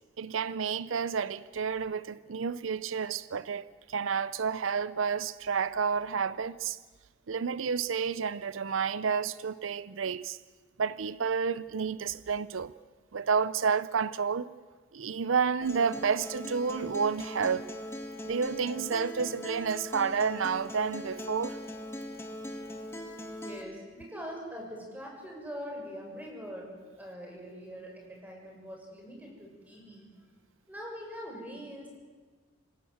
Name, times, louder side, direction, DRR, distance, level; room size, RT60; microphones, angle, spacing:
voice 1, 0.2-6.8 7.3-10.4 10.8-12.7 13.1-14.5 14.9-17.7 18.2-21.6, right 6 dB, 90° right, 0.6 m, -30 dB
Acoustic guitar, 15.6-23.6, left 1 dB, 15° left, 2.4 m, -40 dB
voice 2, 23.4-30.1 30.7-32.0, equal, 10° right, 6.4 m, -43 dB
26.5 x 17.0 x 7.9 m
head